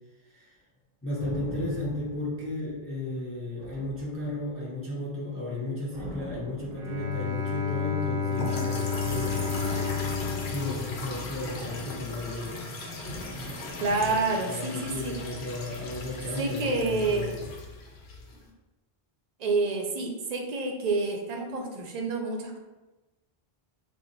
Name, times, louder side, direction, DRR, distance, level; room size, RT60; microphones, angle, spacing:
voice 1, 1.0-9.4 10.5-12.7 13.9-17.3, left 2 dB, 20° left, -5 dB, 0.4 m, -34 dB
sound 1, 1.2-3.1 3.6-4.8 5.9-7.6 9.0-11.4 13.0-15.2 15.5-15.6, equal, 40° left, 1.2 m, -45 dB
Bowed string instrument, 6.7-11.6, left 6 dB, 80° right, 0.9 m, -31 dB
sound 2, 8.3-18.5, left 2 dB, 90° left, 0.9 m, -38 dB
voice 2, 13.8-15.1 16.4-17.3 19.4-22.6, right 3 dB, 50° right, 1 dB, 0.5 m, -28 dB
2.8 x 2.0 x 3.8 m, 1.1 s
omnidirectional pair, 1.0 m